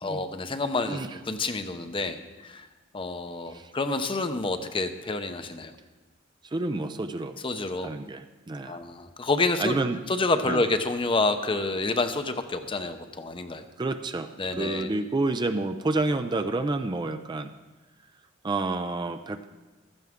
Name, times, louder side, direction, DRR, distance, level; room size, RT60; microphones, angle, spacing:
voice 1, 0.0-2.7 2.9-5.7 7.4-7.9 8.6-9.7 10.1-13.7 14.4-14.9, left 3 dB, 25° left, 8 dB, 0.7 m, -28 dB
voice 2, 0.8-1.2 3.5-3.7 6.4-7.4 7.8-8.8 9.6-10.0 10.5-10.6 13.8-17.5 18.4-19.4, right 2 dB, 20° right, 8 dB, 0.4 m, -29 dB
15.0 x 12.5 x 3.6 m, 1.2 s
head